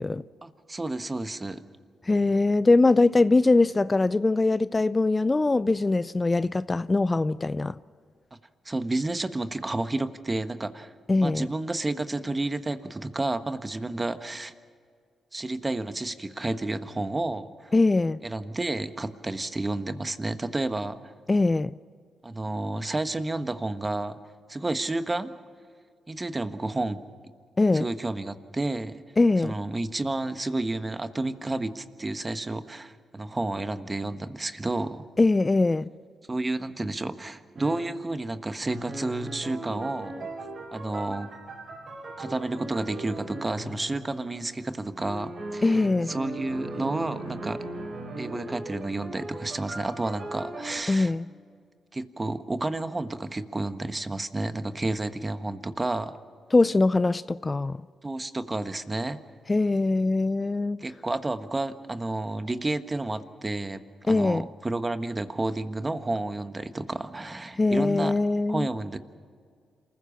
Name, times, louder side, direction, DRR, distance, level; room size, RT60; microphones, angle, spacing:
voice 1, 0.4-1.6 8.6-10.9 11.2-14.5 15.3-17.7 18.2-21.1 22.2-24.2 24.5-25.3 26.1-27.0 27.7-29.0 29.4-35.0 36.3-40.3 40.7-41.3 42.2-47.6 48.2-51.1 51.9-56.2 58.0-59.2 60.8-68.2 68.5-69.0, right 2 dB, 25° right, 1.4 m, -31 dB
voice 2, 2.1-7.8 11.1-11.5 17.7-18.2 21.3-21.7 27.6-27.9 29.2-29.5 35.2-35.9 45.6-46.1 50.9-51.3 56.5-57.8 59.5-60.8 64.1-64.5 67.6-68.7, left 3 dB, 30° left, 0.5 m, -22 dB
sound 1, 37.5-37.9 38.6-44.5 45.0-50.8, right 2 dB, 60° right, 5.9 m, -38 dB
27.5 x 15.0 x 7.3 m
supercardioid pair, 45°, 0 cm